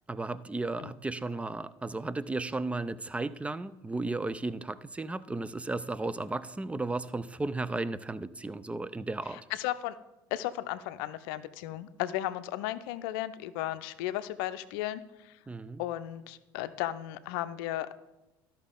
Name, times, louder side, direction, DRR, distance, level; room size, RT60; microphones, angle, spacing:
voice 1, 0.1-9.4 15.5-15.8, right 2 dB, 10° right, 0.4 m, -34 dB
voice 2, 9.3-10.0 10.3-15.4 15.8-17.9, left 14 dB, 70° left, 0.5 m, -35 dB
12.5 x 5.7 x 3.8 m
hypercardioid pair, 70°, 12 cm